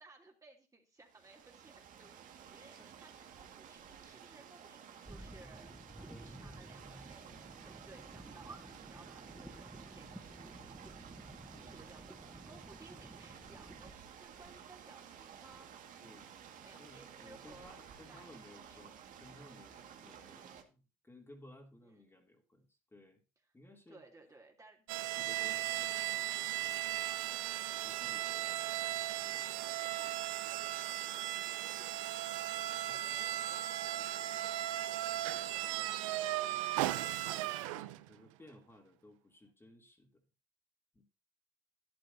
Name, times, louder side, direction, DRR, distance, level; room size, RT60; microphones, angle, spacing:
voice 1, 0.0-2.2 2.5-5.7 6.4-10.5 11.6-15.7 16.6-17.8 18.1-18.8 21.8-22.2 23.9-24.9 28.5-29.0 29.6-32.1 32.9-37.0, right 3 dB, 20° right, 0 dB, 3.2 m, -60 dB
sound 1, 1.0-20.6, right 8 dB, 55° right, 2.0 m, -54 dB
sound 2, 5.0-13.9, right 1 dB, 5° right, 1.1 m, -53 dB
voice 2, 6.0-6.6 11.5-11.8 16.0-16.3 16.8-23.2 23.5-24.0 25.2-27.2 27.8-28.5 29.2-29.5 32.6-33.2 37.6-40.2 40.9-41.0, left 1 dB, 15° left, 1 dB, 3.0 m, -59 dB
sound 3, 24.9-38.1, right 15 dB, 80° right, 0.7 m, -37 dB
12.0 x 11.0 x 2.8 m, 0.31 s
hypercardioid pair, 75°, 16 cm